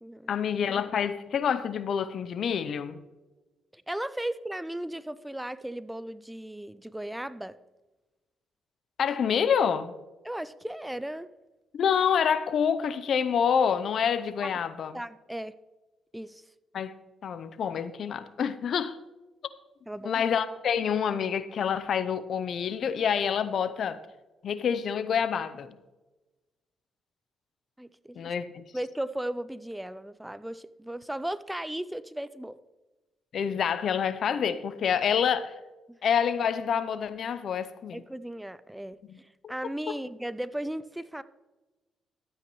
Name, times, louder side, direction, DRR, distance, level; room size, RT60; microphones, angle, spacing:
voice 1, 0.3-3.0 9.0-9.9 11.7-14.9 16.7-16.9 17.2-19.0 20.0-24.0 24.4-25.8 28.2-28.6 33.3-35.5 36.0-38.0 39.1-39.2 39.9-40.0, left 7 dB, 60° left, 0.6 m, -27 dB
voice 2, 3.7-7.6 10.2-11.3 14.4-14.5 14.9-15.5 16.1-16.4 19.9-20.2 27.8-28.3 28.7-32.6 35.9-36.0 37.9-41.2, right 1 dB, 5° right, 0.4 m, -36 dB
13.0 x 8.8 x 3.1 m
cardioid pair, 90°, 0 cm